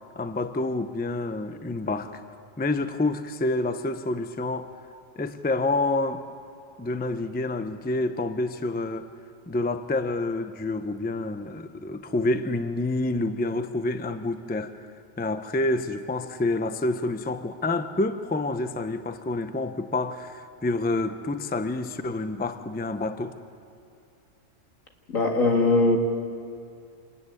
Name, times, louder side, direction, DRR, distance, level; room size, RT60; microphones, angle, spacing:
voice 1, 0.2-2.2 2.6-4.7 5.2-6.2 6.8-9.1 9.5-14.9 15.2-23.4, left 2 dB, 10° left, 9 dB, 0.5 m, -28 dB
voice 2, 25.1-26.0, left 2 dB, 80° left, 3 dB, 2.3 m, -20 dB
26.0 x 14.0 x 9.6 m, 2.5 s
omnidirectional pair, 1.4 m